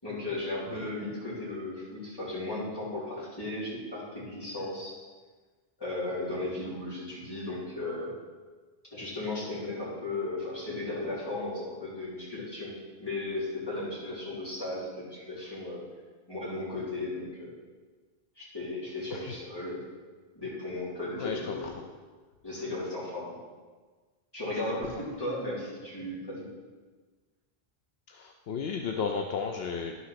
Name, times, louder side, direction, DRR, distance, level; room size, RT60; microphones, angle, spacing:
voice 1, 0.0-5.0 5.8-8.1 8.9-12.7 13.0-15.8 16.3-17.5 18.4-19.8 20.4-21.7 22.4-23.3 24.3-26.5, left 2 dB, 20° left, -8 dB, 3.6 m, -35 dB
voice 2, 21.2-21.8 24.7-24.8 28.1-30.0, left 5 dB, 75° left, 3 dB, 0.9 m, -34 dB
11.0 x 5.7 x 5.9 m, 1.4 s
omnidirectional pair, 1.1 m